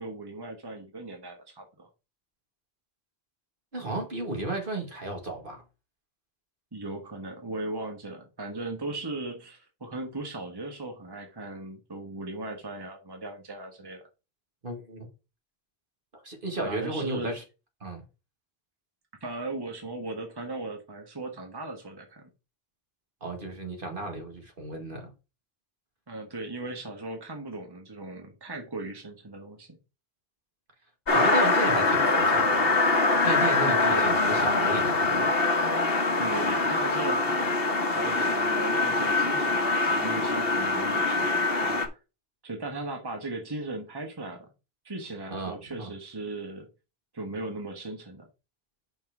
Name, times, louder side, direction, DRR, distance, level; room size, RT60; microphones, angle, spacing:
voice 1, 0.0-1.9 6.7-14.0 16.6-17.3 19.2-22.3 26.1-29.7 33.6-34.1 36.2-37.6 37.9-41.3 41.6-41.8 42.4-44.5 44.8-46.7 47.1-48.3, right 2 dB, 25° right, 1.3 m, -37 dB
voice 2, 3.7-5.6 14.6-15.1 16.2-17.4 17.8-18.0 23.2-25.1 31.1-32.8 33.2-35.3 45.3-45.9, right 2 dB, 60° right, 2.2 m, -33 dB
sound 1, 31.1-41.9, left 3 dB, 65° left, 1.4 m, -24 dB
5.7 x 4.3 x 5.9 m
omnidirectional pair, 1.0 m